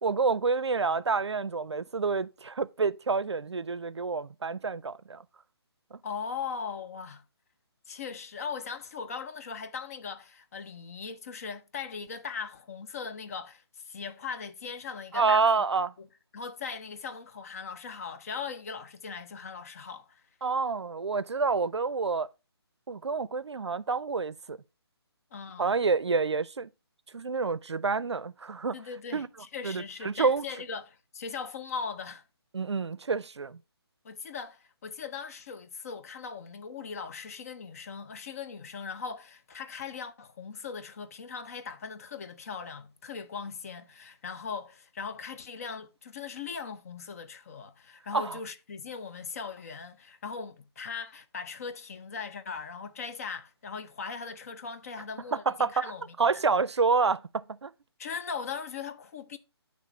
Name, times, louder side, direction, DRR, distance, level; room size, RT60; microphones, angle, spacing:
voice 1, 0.0-5.2 5.9-6.0 15.1-15.9 20.4-22.3 22.9-24.6 25.6-26.7 27.1-28.8 29.1-29.3 29.6-30.5 32.5-33.6 48.1-48.4 55.3-55.9 56.2-57.7, right 4 dB, 85° right, 0.4 m, -28 dB
voice 2, 6.0-7.2 7.9-15.4 16.0-16.1 16.3-20.2 25.3-25.7 28.7-32.2 34.0-56.1 58.0-59.4, left 5 dB, 35° left, 0.5 m, -39 dB
9.0 x 3.1 x 4.2 m
figure-of-eight pair, 145°, 14 cm